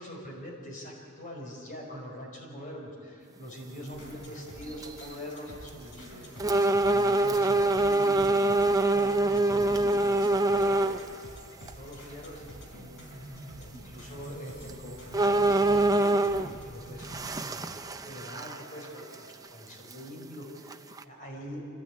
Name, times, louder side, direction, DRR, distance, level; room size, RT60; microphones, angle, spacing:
voice 1, 0.0-6.3 6.8-8.5 8.9-11.0 11.6-13.1 13.5-16.3 16.6-17.4 18.0-21.6, equal, 40° left, 0 dB, 5.1 m, -44 dB
sound 1, 3.9-19.3, equal, 65° left, 4.7 m, -47 dB
sound 2, 4.0-4.2 4.7-5.1 5.7-5.8 6.4-11.0 11.7-11.8 14.1-14.2 14.7-14.8 15.1-16.6 17.0-18.9 19.1-19.2 19.9-20.0 20.7-21.0, right 2 dB, 15° right, 0.7 m, -25 dB
26.0 x 16.0 x 8.6 m, 2.3 s
head